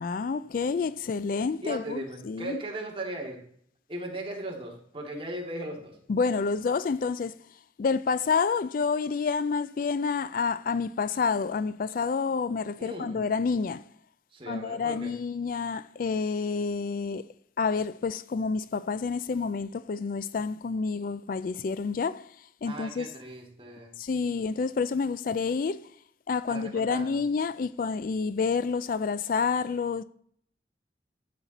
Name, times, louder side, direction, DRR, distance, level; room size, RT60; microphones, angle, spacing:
voice 1, 0.0-2.6 6.1-7.4 7.8-13.8 14.5-17.2 17.6-22.3 22.6-23.1 24.0-25.9 26.3-30.0, left 5 dB, 50° left, 0.3 m, -29 dB
voice 2, 1.6-3.4 3.9-5.9 12.8-13.2 14.3-15.1 22.6-23.9 26.5-27.2, right 1 dB, 30° right, 2.2 m, -37 dB
12.0 x 7.5 x 4.1 m
head